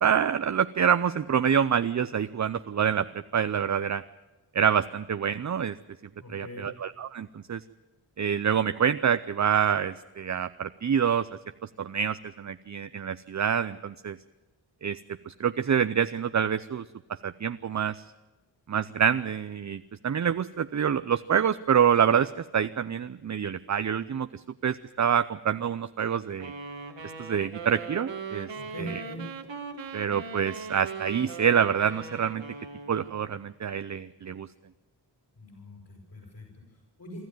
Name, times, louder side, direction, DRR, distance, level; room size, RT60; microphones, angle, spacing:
voice 1, 0.0-3.1 3.3-4.0 4.5-5.8 6.3-7.6 8.2-11.3 11.8-14.2 14.8-15.0 15.3-16.8 17.2-18.0 18.7-24.3 24.6-26.5 27.2-28.5 28.8-29.0 29.9-32.4 32.9-34.5, right 8 dB, 40° right, 12 dB, 0.6 m, -26 dB
voice 2, 6.2-6.7 28.5-29.2 35.4-37.2, equal, 50° left, 0 dB, 7.2 m, -42 dB
sound 1, 26.4-33.4, right 5 dB, 85° right, 2.1 m, -40 dB
25.0 x 13.0 x 9.2 m, 1.2 s
cardioid pair, 65°, 43 cm